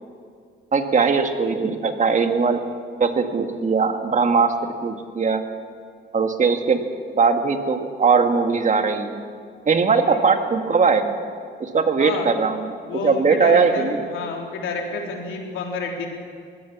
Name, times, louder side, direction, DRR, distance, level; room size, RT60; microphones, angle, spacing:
voice 1, 0.7-2.6 3.0-5.4 6.1-6.8 7.1-9.2 9.7-11.2 11.6-12.8 13.0-14.0, right 5 dB, 40° right, 6 dB, 1.9 m, -20 dB
voice 2, 12.0-12.3 12.9-16.1, left 4 dB, 85° left, 1 dB, 3.7 m, -29 dB
22.0 x 17.0 x 7.3 m, 2.1 s
cardioid pair, 90°, 20 cm